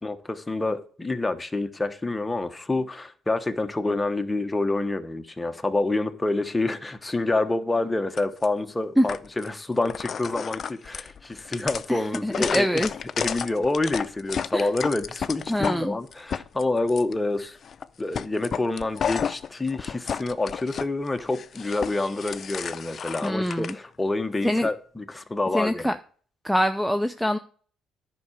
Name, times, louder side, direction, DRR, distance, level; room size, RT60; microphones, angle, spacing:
voice 1, 0.0-12.8 13.2-17.6 18.0-25.9, left 2 dB, 15° left, 1.2 m, -27 dB
sound 1, 8.2-8.5 9.1-9.5 9.8-15.8 16.1-17.1 17.6-17.9 18.1-20.8 21.2-23.7, left 7 dB, 45° left, 0.6 m, -32 dB
voice 2, 11.9-12.9 14.5-14.7 15.5-16.0 23.2-23.8 24.4-24.7 25.5-25.9 26.4-27.4, equal, ahead, 0.6 m, -24 dB
10.5 x 5.7 x 6.6 m
cardioid pair, 100°, 0 cm